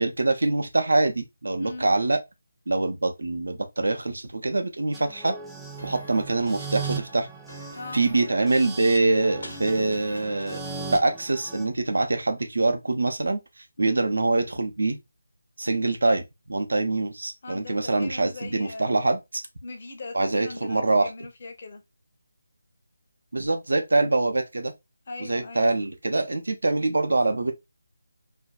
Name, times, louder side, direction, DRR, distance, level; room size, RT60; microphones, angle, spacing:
voice 1, 0.0-2.2 2.7-5.3 5.8-7.3 7.9-10.6 10.9-13.4 13.8-15.0 15.6-19.4 20.1-21.1 23.3-24.7 25.2-27.5, right 2 dB, 70° right, 0.6 m, -24 dB
sound 1, 4.9-11.7, right 5 dB, 5° right, 0.3 m, -38 dB
sound 2, 5.8-11.0, left 1 dB, 85° left, 1.0 m, -45 dB
voice 2, 17.4-19.0 19.6-21.8 25.1-25.7, left 3 dB, 45° left, 0.7 m, -40 dB
2.6 x 2.1 x 2.3 m
figure-of-eight pair, 155°, 0 cm